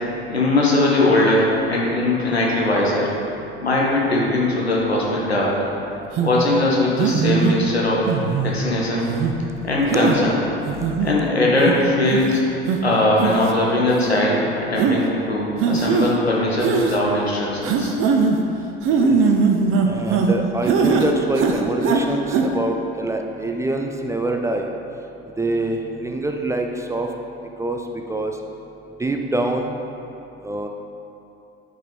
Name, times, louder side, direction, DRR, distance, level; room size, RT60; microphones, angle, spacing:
voice 1, 0.3-3.1 3.6-5.5 6.2-8.1 8.4-9.1 9.6-10.4 11.0-12.4 12.8-17.9, left 2 dB, 85° left, -4 dB, 1.3 m, -20 dB
sound 1, 6.2-6.3 7.0-7.5 8.1-8.5 9.1-9.3 9.9-10.2 10.7-11.1 11.7-11.8 12.1-12.3 12.7-12.8 13.2-13.5 13.9-14.0 14.8-15.0 15.6-16.1 16.6-17.0 17.6-18.4 18.8-20.3 20.7-21.1 21.3-22.0 22.3-22.4, right 5 dB, 40° right, 0.8 m, -20 dB
voice 2, 10.8-11.3 18.9-19.2 19.8-24.7 25.4-27.1 27.6-27.8 28.1-28.4 29.0-29.7 30.4-30.7, right 2 dB, 10° right, 3 dB, 0.5 m, -25 dB
9.0 x 5.4 x 4.2 m, 2.8 s
figure-of-eight pair, 65°, 31 cm